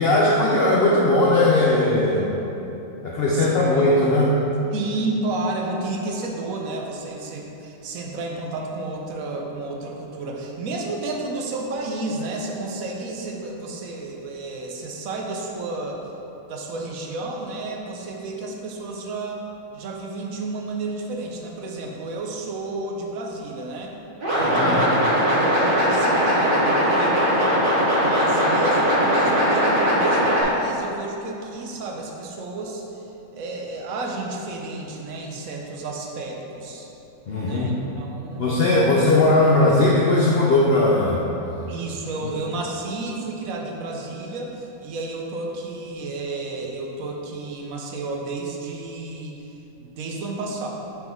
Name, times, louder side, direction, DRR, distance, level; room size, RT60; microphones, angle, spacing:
voice 1, 0.0-2.4 3.0-4.4 24.4-24.9 37.3-37.7 38.4-41.2 42.2-42.3, left 2 dB, 60° left, -4 dB, 0.7 m, -18 dB
voice 2, 4.7-16.0 16.5-19.4 19.7-24.0 24.3-24.9 25.3-32.8 33.3-36.9 37.4-38.5 41.7-49.4 49.8-50.7, right 2 dB, 75° right, 0 dB, 1.1 m, -31 dB
sound 1, 24.2-30.4, equal, 40° right, 1.6 m, -20 dB
6.0 x 5.5 x 3.5 m, 3.0 s
omnidirectional pair, 1.5 m